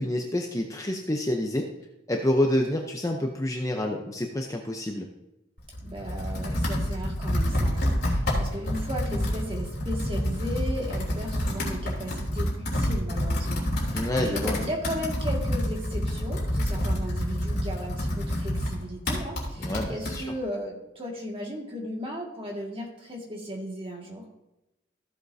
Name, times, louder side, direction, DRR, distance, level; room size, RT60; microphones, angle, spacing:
voice 1, 0.0-1.7 2.1-5.1 13.9-14.6 19.6-20.3, left 1 dB, 15° left, 2 dB, 0.6 m, -28 dB
Computer keyboard, 5.6-20.2, equal, 50° left, 3.3 m, -28 dB
voice 2, 5.8-24.2, equal, 25° right, -1 dB, 1.9 m, -36 dB
14.5 x 8.0 x 2.7 m, 0.92 s
head